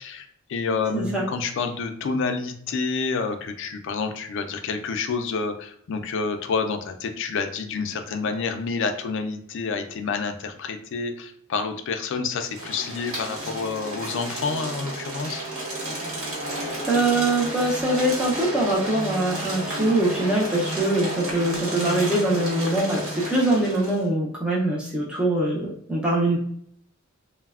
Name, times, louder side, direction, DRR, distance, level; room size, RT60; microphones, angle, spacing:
voice 1, 0.0-15.4, left 4 dB, 60° left, 6 dB, 0.4 m, -28 dB
voice 2, 0.9-1.2 16.5-26.4, right 1 dB, 5° right, -5 dB, 0.4 m, -23 dB
sound 1, 12.4-24.0, right 1 dB, 75° right, 1.0 m, -32 dB
3.1 x 2.0 x 2.3 m, 0.67 s
head